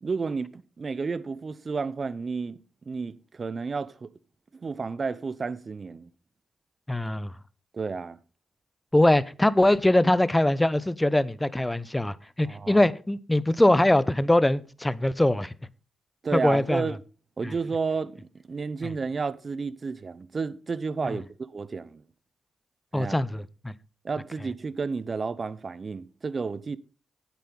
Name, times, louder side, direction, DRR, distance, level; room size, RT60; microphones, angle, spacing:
voice 1, 0.0-2.6 2.9-4.1 4.5-6.1 7.7-8.2 12.4-12.9 16.2-17.0 17.4-21.2 21.5-22.0 22.9-23.1 24.0-26.8, right 4 dB, 45° right, 0.9 m, -31 dB
voice 2, 6.9-7.3 8.9-15.5 16.3-16.9 17.4-17.5 18.8-18.9 21.0-21.2 22.9-23.7, left 1 dB, 15° left, 0.8 m, -22 dB
9.5 x 8.5 x 5.5 m
supercardioid pair, 45°, 0 cm